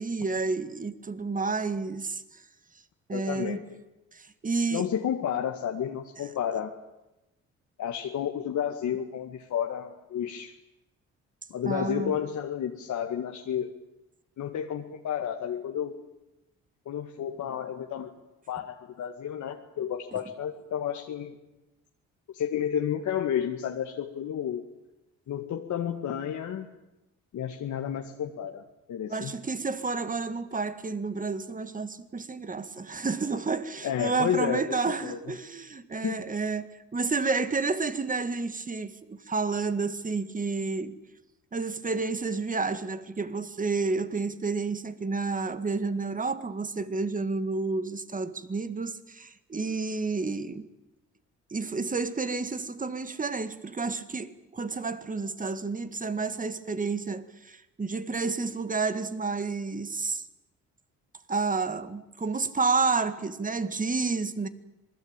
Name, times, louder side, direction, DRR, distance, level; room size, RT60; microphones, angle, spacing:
voice 1, 0.0-2.4 3.1-3.6 4.1-4.9 6.2-6.3 11.7-12.1 29.1-40.9 41.5-50.7 51.5-60.3 61.3-64.5, right 4 dB, 25° right, 2.1 m, -30 dB
voice 2, 3.1-3.8 4.7-6.7 7.8-10.6 11.5-13.7 14.4-16.0 16.9-18.1 18.5-21.3 22.3-24.7 25.3-26.7 27.3-29.3 33.8-35.2 36.0-36.2, left 9 dB, 70° left, 2.0 m, -31 dB
26.5 x 20.5 x 9.0 m
cardioid pair, 90°, 30 cm